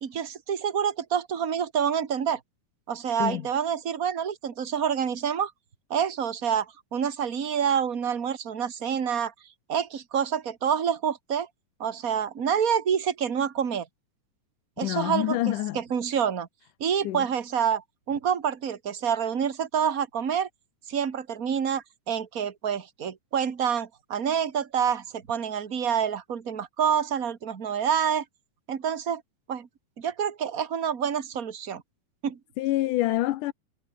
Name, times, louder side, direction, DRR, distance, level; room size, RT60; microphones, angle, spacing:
voice 1, 0.0-2.4 2.9-5.5 5.9-9.3 9.7-11.5 11.8-13.9 14.8-16.5 16.8-20.5 20.9-28.2 28.7-29.2 29.5-29.7 30.0-31.8 32.2-32.4, right 8 dB, 35° right, 1.8 m, -27 dB
voice 2, 14.8-15.8 17.0-17.3 32.6-33.5, left 16 dB, 85° left, 2.4 m, -26 dB
omnidirectional pair, 3.6 m